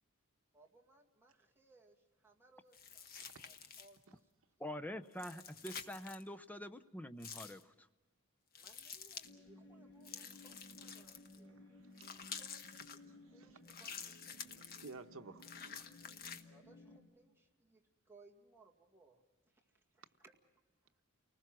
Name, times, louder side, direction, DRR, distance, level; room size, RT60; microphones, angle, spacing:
voice 1, 0.5-2.0 2.2-4.0 8.6-11.6 12.1-12.8 13.3-14.5 16.5-19.2 19.9-20.3, right 3 dB, 10° right, -1 dB, 2.1 m, -66 dB
sound 1, 2.7-4.0 5.1-6.2 7.2-7.6 8.6-9.3 10.0-11.4 12.0-13.0 13.7-14.9 15.4-16.4, left 6 dB, 45° left, 1.1 m, -49 dB
voice 2, 3.2-3.5 4.1-4.2 10.8-10.9 11.4-12.1 13.0-13.6 14.6-15.9, right 3 dB, 75° right, 8 dB, 1.0 m, -56 dB
voice 3, 4.6-7.9, equal, 10° left, 10 dB, 0.7 m, -46 dB
sound 2, 9.2-17.0, left 1 dB, 65° left, 5.4 m, -59 dB
30.0 x 20.0 x 6.1 m, 1.1 s
head